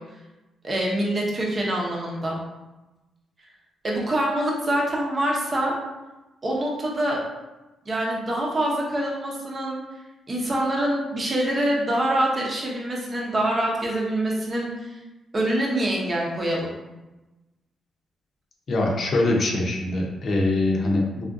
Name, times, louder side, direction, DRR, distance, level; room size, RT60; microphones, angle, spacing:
voice 1, 0.6-2.4 3.8-5.7 6.4-7.2 7.9-9.8 10.3-15.0 15.3-16.8, right 1 dB, 35° right, -2 dB, 0.7 m, -25 dB
voice 2, 18.7-21.2, left 2 dB, 55° left, 0 dB, 0.7 m, -23 dB
3.5 x 2.4 x 2.5 m, 1.1 s
cardioid pair, 90°, 0 cm